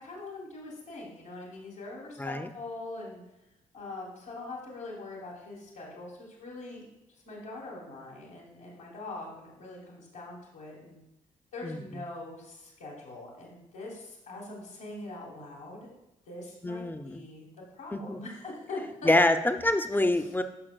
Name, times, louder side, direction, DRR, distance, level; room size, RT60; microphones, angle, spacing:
voice 1, 0.0-3.2 3.7-6.8 7.1-11.0 11.5-15.9 16.3-17.5 17.7-19.2 20.1-20.3, left 2 dB, 85° left, -8 dB, 1.9 m, -42 dB
voice 2, 2.2-2.5 11.6-11.8 16.6-17.2 17.9-18.2 19.0-20.4, left 1 dB, 10° left, 8 dB, 0.7 m, -26 dB
12.5 x 5.9 x 2.4 m, 0.92 s
hypercardioid pair, 40°, 18 cm